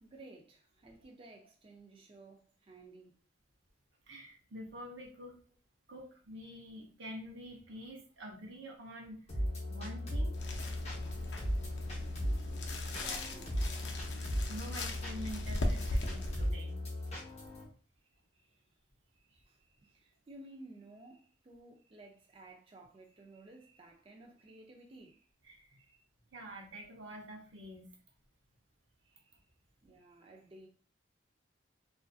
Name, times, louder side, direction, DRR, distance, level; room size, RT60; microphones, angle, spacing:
voice 1, 0.0-3.1 11.3-11.7 12.7-13.6 18.0-18.7 19.1-25.3 25.8-26.0 29.0-29.5 29.8-30.7, right 2 dB, 30° right, 0.4 m, -56 dB
voice 2, 4.1-5.4 5.9-9.3 9.7-10.3 14.5-16.8 25.5-25.8 26.3-28.0, equal, 85° right, 0.8 m, -47 dB
sound 1, 9.3-17.6, left 1 dB, 35° left, 0.8 m, -37 dB
sound 2, 10.3-16.5, left 1 dB, 65° left, 0.5 m, -39 dB
2.5 x 2.4 x 2.3 m
head